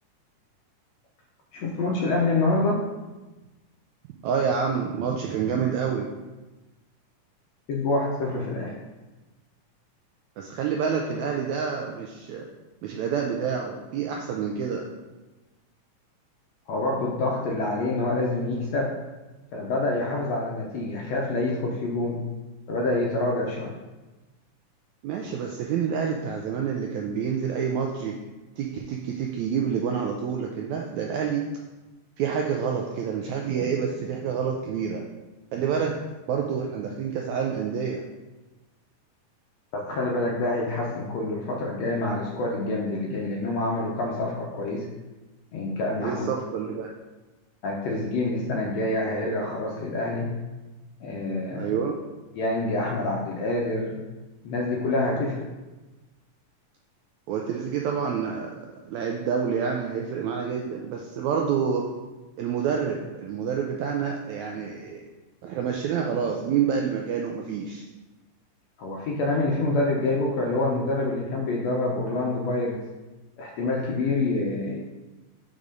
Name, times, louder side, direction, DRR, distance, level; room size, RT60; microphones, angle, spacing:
voice 1, 1.5-2.8 7.7-8.7 16.7-18.9 19.5-22.2 22.7-23.7 25.2-25.3 39.7-44.9 45.5-46.3 47.6-50.3 51.0-51.7 52.3-54.0 54.4-55.5 68.8-72.8 73.4-74.8, left 2 dB, 70° left, -2 dB, 1.6 m, -27 dB
voice 2, 4.2-6.1 10.4-12.5 12.8-14.9 25.0-28.2 28.6-31.4 32.2-35.0 35.5-36.0 36.3-38.0 46.0-46.9 51.5-52.0 57.3-61.9 62.4-65.0 65.4-67.8, right 7 dB, 80° right, 1 dB, 1.6 m, -28 dB
5.5 x 4.8 x 5.1 m, 1.1 s
omnidirectional pair, 3.8 m